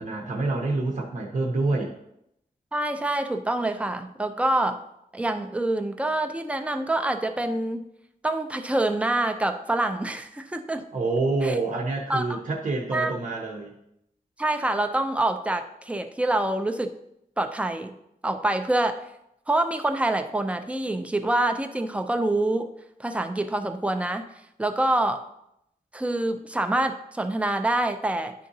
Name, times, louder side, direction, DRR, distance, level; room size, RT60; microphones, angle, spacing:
voice 1, 0.0-1.9 10.9-13.8, right 3 dB, 60° right, -1 dB, 0.8 m, -27 dB
voice 2, 2.7-4.8 5.1-7.8 8.2-10.8 11.4-11.5 12.1-12.4 12.9-13.2 14.4-16.9 17.4-17.9 18.2-19.0 19.5-22.7 23.0-24.2 24.6-25.3 25.9-28.3, right 2 dB, 10° right, 6 dB, 0.4 m, -26 dB
10.0 x 3.8 x 2.7 m, 0.80 s
wide cardioid pair, 150°, 15 cm